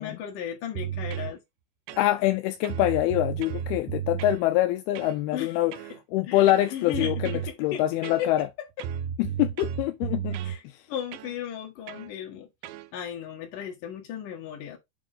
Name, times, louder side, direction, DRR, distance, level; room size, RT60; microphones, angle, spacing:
voice 1, 0.0-1.4 5.3-5.5 6.3-7.4 7.7-8.5 10.4-10.6 10.9-12.5 12.9-14.8, left 9 dB, 60° left, 3.0 m, -35 dB
sound 1, 0.7-1.3 1.9-2.4 2.6-4.4 5.0-5.2 5.7-6.0 6.5-7.5 8.0-8.5 8.8-10.6 11.1-11.3 11.9-12.1 12.6-12.9, right 10 dB, 85° right, 2.1 m, -33 dB
voice 2, 2.0-5.8 6.1-8.5 9.2-10.8, left 14 dB, 80° left, 2.3 m, -25 dB
8.7 x 3.5 x 3.8 m
omnidirectional pair, 4.8 m